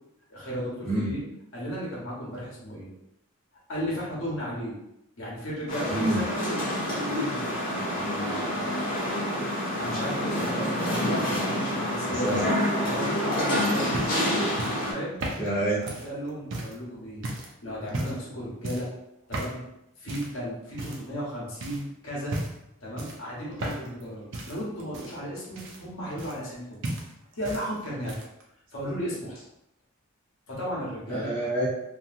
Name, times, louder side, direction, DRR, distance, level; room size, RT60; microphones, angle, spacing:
voice 1, 0.3-1.2 1.5-2.9 3.7-4.8 5.2-9.2 9.8-12.5 12.8-14.4 14.9-15.2 15.8-17.3 17.6-18.9 19.3-19.6 20.0-22.3 22.8-26.8 27.3-28.2 28.7-29.4 30.5-31.3, equal, 70° left, -6 dB, 1.1 m, -35 dB
sound 1, 5.7-14.9, equal, 40° left, 0.9 m, -28 dB
voice 2, 5.9-6.2 12.1-12.5 15.4-15.8 31.1-31.7, right 1 dB, 5° left, -11 dB, 0.7 m, -27 dB
sound 2, 13.4-16.8 17.2-17.5 17.9-18.3 18.6-18.9 19.3-19.6 20.1-20.4 20.8-21.3 21.6-21.8 22.3-22.7 23.0-24.0 24.3-26.6 26.8-27.7 27.9-28.4 29.4-29.5, right 1 dB, 55° right, 0.5 m, -35 dB
2.9 x 2.6 x 2.5 m, 0.85 s
head